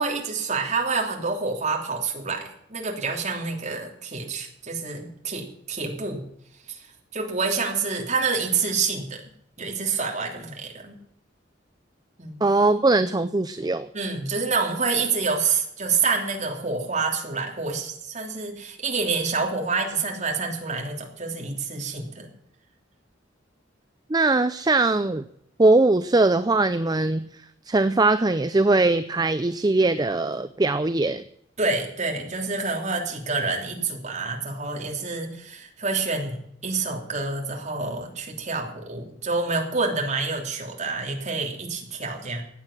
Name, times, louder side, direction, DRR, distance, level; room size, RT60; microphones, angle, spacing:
voice 1, 0.0-6.2 6.7-6.8 7.1-9.2 9.6-11.0 12.2-12.5 13.9-22.3 31.6-42.4, right 4 dB, 35° right, 1 dB, 3.1 m, -27 dB
voice 2, 12.4-13.9 24.1-25.2 25.6-27.3 27.7-31.2, right 2 dB, 20° right, 12 dB, 0.5 m, -21 dB
15.5 x 9.5 x 7.3 m, 0.72 s
head